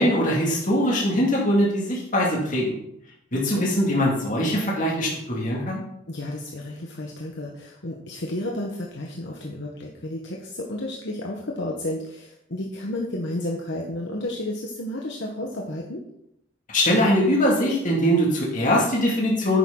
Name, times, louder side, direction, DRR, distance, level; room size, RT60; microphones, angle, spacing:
voice 1, 0.0-2.8 3.3-5.8 16.7-19.6, equal, 40° left, -3 dB, 2.3 m, -22 dB
voice 2, 3.3-3.7 6.1-16.0, left 1 dB, 60° left, -1 dB, 1.2 m, -32 dB
10.5 x 9.1 x 3.8 m, 0.78 s
head